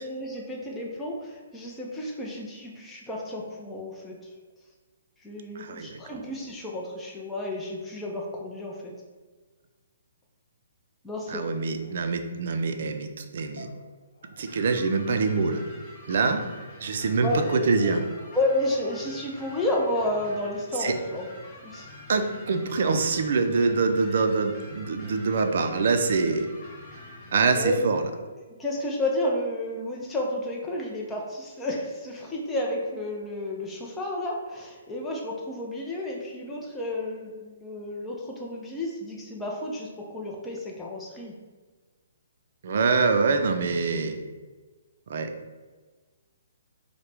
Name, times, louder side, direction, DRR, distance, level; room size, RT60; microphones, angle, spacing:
voice 1, 0.0-4.2 5.2-8.9 11.0-11.6 17.2-17.8 18.3-21.3 21.6-21.9 27.6-27.9 28.6-41.4, left 1 dB, 10° left, -3 dB, 0.6 m, -31 dB
voice 2, 5.6-6.0 11.3-13.7 14.4-15.6 16.1-16.4 16.8-18.0 20.8-21.0 22.1-26.5 27.3-28.0 42.6-44.2 45.1-45.3, right 4 dB, 60° right, 6 dB, 0.4 m, -25 dB
sound 1, 11.8-11.9 13.6-14.5 17.3-19.0, left 3 dB, 85° left, 0.5 m, -44 dB
sound 2, 14.5-27.6, left 2 dB, 25° left, 1.1 m, -46 dB
4.6 x 2.2 x 3.3 m, 1.4 s
hypercardioid pair, 150°, 0 cm